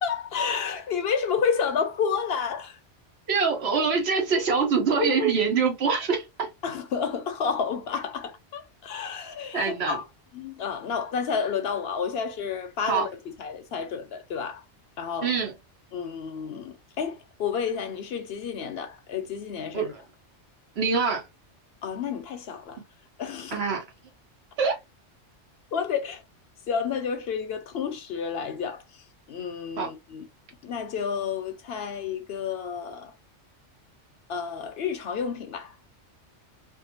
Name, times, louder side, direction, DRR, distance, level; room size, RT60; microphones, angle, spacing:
voice 1, 0.0-2.8 6.6-10.0 10.3-13.1 13.4-14.6 15.0-15.3 15.9-19.9 21.8-22.8 23.2-23.6 25.7-26.2 26.7-28.8 29.3-30.2 30.6-33.1 34.3-35.7, left 6 dB, 65° left, 0.7 m, -30 dB
voice 2, 3.3-6.5 9.5-10.0 12.9-13.1 15.2-15.5 19.7-20.0 20.8-21.3 23.5-23.8 24.6-24.8 29.8-29.9, right 5 dB, 65° right, 1.1 m, -24 dB
2.6 x 2.2 x 2.8 m
omnidirectional pair, 1.2 m